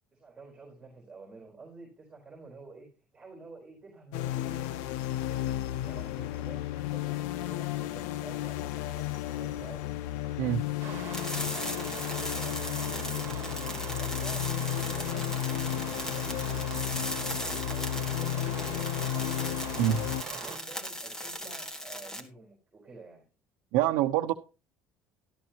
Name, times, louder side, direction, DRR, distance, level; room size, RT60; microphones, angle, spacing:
voice 1, 0.1-2.9 3.1-4.9 5.3-9.9 10.3-13.3 13.9-19.0 20.2-23.3, right 3 dB, 15° right, 4.2 m, -50 dB
sound 1, 4.1-20.2, left 13 dB, 85° left, 0.6 m, -33 dB
sound 2, 10.8-20.6, right 10 dB, 50° right, 1.6 m, -42 dB
sound 3, 11.1-22.2, equal, 10° left, 1.6 m, -38 dB
voice 2, 23.7-24.3, right 12 dB, 85° right, 0.9 m, -25 dB
13.0 x 12.5 x 2.9 m
cardioid pair, 160°, 6 cm